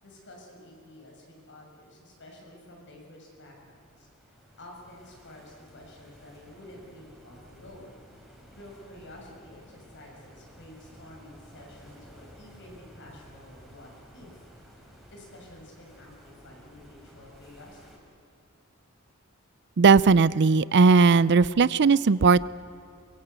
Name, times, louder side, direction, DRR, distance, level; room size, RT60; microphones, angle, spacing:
voice 1, 0.0-8.0 8.5-14.4 15.1-18.1, left 1 dB, 60° left, 0 dB, 6.8 m, -50 dB
sound 1, 3.2-18.0, equal, ahead, 5.0 m, -53 dB
voice 2, 19.8-22.4, right 4 dB, 55° right, 19 dB, 0.5 m, -18 dB
23.5 x 22.5 x 8.2 m, 2.5 s
head